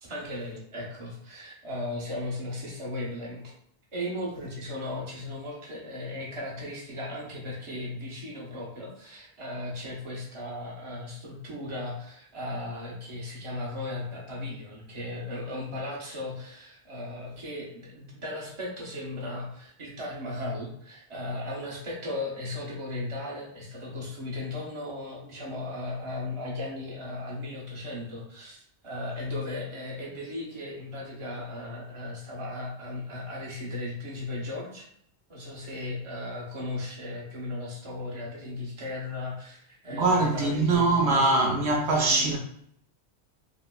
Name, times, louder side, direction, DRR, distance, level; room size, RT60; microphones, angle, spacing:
voice 1, 0.0-3.5 3.9-34.9 35.3-41.7 42.1-42.4, left 2 dB, 30° right, 0.9 m, -36 dB
voice 2, 39.9-42.4, right 3 dB, 75° right, 0.9 m, -23 dB
5.0 x 2.1 x 2.3 m
omnidirectional pair, 1.1 m